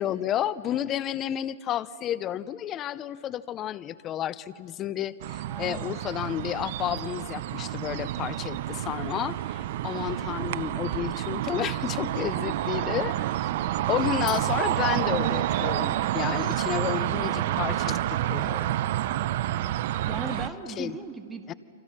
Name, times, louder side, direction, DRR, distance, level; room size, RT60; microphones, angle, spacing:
voice 1, 0.0-13.5 13.9-18.8 20.8-21.0 21.5-21.6, left 11 dB, 30° left, 17 dB, 0.7 m, -31 dB
sound 1, 5.2-20.5, right 13 dB, 60° right, 0.8 m, -29 dB
voice 2, 5.5-6.1 12.8-13.0 20.1-21.5, right 4 dB, 10° right, 5 dB, 2.0 m, -38 dB
sound 2, 7.0-12.6 14.2-19.2, left 7 dB, 45° left, 6.0 m, -54 dB
29.5 x 25.5 x 5.9 m, 2.2 s
hypercardioid pair, 130°, 0 cm